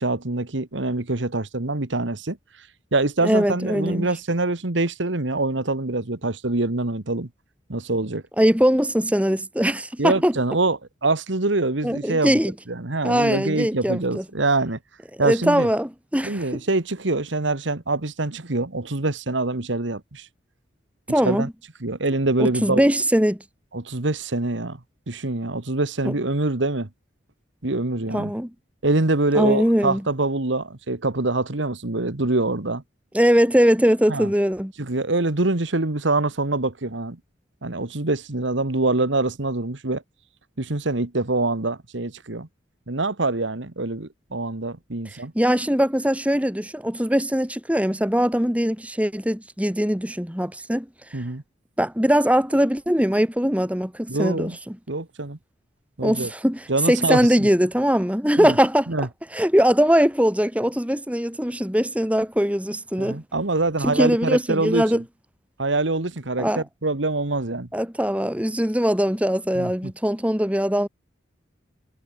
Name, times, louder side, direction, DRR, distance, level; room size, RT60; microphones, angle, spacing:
voice 1, 0.0-2.7 2.9-7.3 7.7-8.2 10.0-12.4 12.7-14.8 15.2-15.7 16.2-20.3 21.2-21.5 21.8-22.9 23.7-24.8 25.1-26.9 27.6-28.3 28.8-32.8 34.1-34.3 34.8-37.2 37.6-40.0 40.6-42.5 42.9-45.3 51.1-51.4 54.1-54.6 54.9-55.4 56.0-56.3 56.7-57.5 58.4-58.5 58.9-59.1 63.0-65.0 65.6-67.7 69.5-69.7, right 2 dB, 80° right, 1.6 m, -25 dB
voice 2, 3.2-4.1 8.4-10.4 11.8-12.5 13.0-14.2 15.2-16.6 21.1-21.5 22.4-23.4 26.0-26.1 28.1-28.5 29.3-30.0 33.1-34.7 45.3-51.2 51.8-54.8 56.0-58.9 59.3-63.2 63.8-65.0 66.4-66.6 67.7-70.9, equal, 5° right, 2.9 m, -21 dB
head